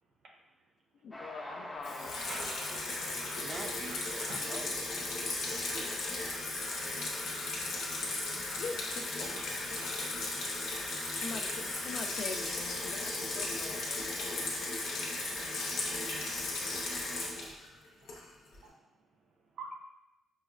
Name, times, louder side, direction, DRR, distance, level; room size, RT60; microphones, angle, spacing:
voice 1, 1.0-2.2 8.6-9.3 9.7-9.8 10.7-14.5, left 4 dB, 65° left, 6 dB, 0.3 m, -44 dB
Train, 1.1-5.5, left 1 dB, 15° left, 0.5 m, -47 dB
Water tap faucet / Sink (filling or washing), 1.8-18.5, left 2 dB, 85° left, 0.7 m, -36 dB
voice 2, 2.2-2.8 4.2-4.4 9.8-9.9 14.9-15.0 15.9-16.3 18.6-18.7 19.6-19.8, right 3 dB, 75° right, 1 dB, 0.6 m, -46 dB
voice 3, 3.3-5.1 5.5-6.5, right 3 dB, 40° right, 5 dB, 0.4 m, -47 dB
5.4 x 2.0 x 2.4 m, 0.88 s
cardioid pair, 110°, 0 cm